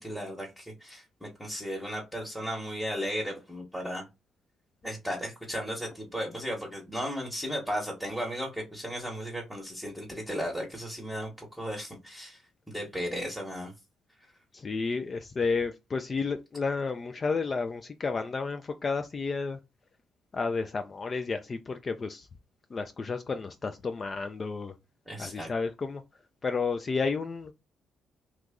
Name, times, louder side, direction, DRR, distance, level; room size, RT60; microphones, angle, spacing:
voice 1, 0.0-4.0 4.8-12.4 12.7-13.7 25.1-25.5, equal, ahead, 1.1 m, -35 dB
voice 2, 14.5-19.6 20.3-22.3 22.7-24.7 25.2-26.0 26.4-27.5, left 4 dB, 35° left, 0.3 m, -31 dB
3.0 x 2.4 x 3.5 m
cardioid pair, 90°, 0 cm